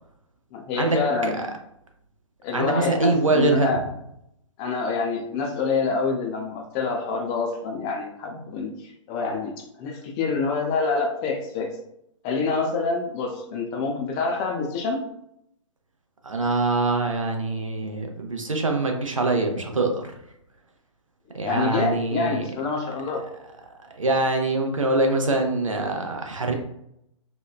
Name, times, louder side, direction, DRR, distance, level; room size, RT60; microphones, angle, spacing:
voice 1, 0.5-1.6 2.4-3.8 4.6-11.7 12.2-15.0 21.4-23.2, left 4 dB, 20° left, 2 dB, 0.3 m, -27 dB
voice 2, 2.5-3.8 16.2-20.2 21.3-22.4 24.0-26.5, right 2 dB, 85° right, 3 dB, 0.5 m, -24 dB
2.9 x 2.2 x 2.2 m, 0.76 s
figure-of-eight pair, 120°, 16 cm